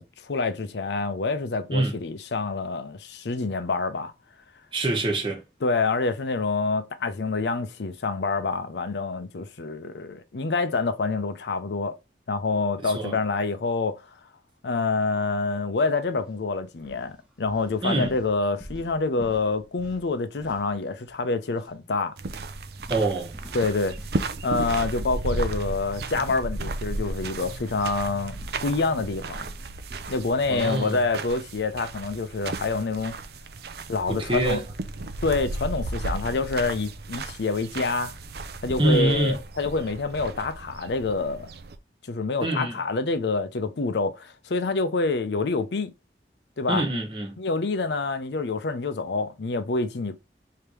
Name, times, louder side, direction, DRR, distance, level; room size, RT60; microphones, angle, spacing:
voice 1, 0.0-4.1 5.6-12.0 12.3-14.2 14.6-22.2 23.5-24.0 24.4-29.5 30.1-33.1 33.9-34.6 35.2-38.1 38.6-41.5 42.0-45.9 46.6-46.8 47.4-50.2, left 3 dB, 80° left, 0.6 m, -27 dB
voice 2, 4.7-5.4 12.8-13.2 17.8-18.1 22.9-23.3 30.5-31.0 34.1-34.6 38.8-39.4 42.4-42.8 46.7-47.4, right 2 dB, 30° right, 1.1 m, -25 dB
sound 1, 16.1-16.3 16.7-21.2 21.5-21.7 22.2-27.3 27.7-31.1, equal, 5° right, 0.9 m, -48 dB
sound 2, 22.2-41.8, right 2 dB, 65° right, 0.5 m, -34 dB
3.4 x 2.9 x 4.5 m
head